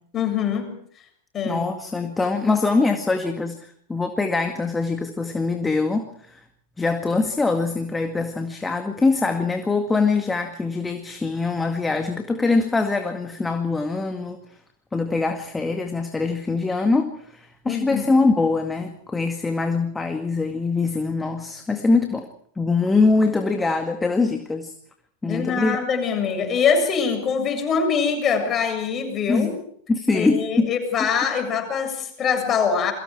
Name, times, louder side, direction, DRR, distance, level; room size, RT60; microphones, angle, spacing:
voice 1, 0.1-0.7 1.3-1.6 17.7-18.1 25.2-29.6 30.1-32.9, left 6 dB, 25° left, 4 dB, 7.3 m, -23 dB
voice 2, 1.4-6.4 6.8-14.4 14.9-22.3 22.6-24.7 25.2-25.8 29.3-29.6 29.9-30.7 31.0-31.1, left 3 dB, 10° left, 6 dB, 2.1 m, -23 dB
29.0 x 23.5 x 4.7 m, 0.64 s
figure-of-eight pair, 90°, 0 cm